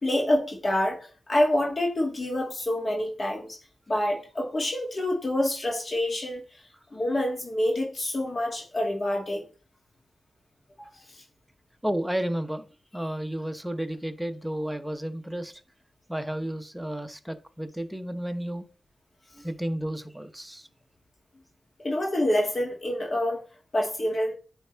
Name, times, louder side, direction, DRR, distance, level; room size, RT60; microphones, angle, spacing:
voice 1, 0.0-3.6 3.9-6.4 6.9-9.5 10.8-10.9 21.8-23.4 23.7-24.3, left 1 dB, 40° left, 2.2 m, -27 dB
voice 2, 11.8-12.7 12.9-15.6 16.1-18.7 19.3-20.7, right 1 dB, 5° right, 0.9 m, -32 dB
9.2 x 3.5 x 3.4 m
cardioid pair, 50°, 0 cm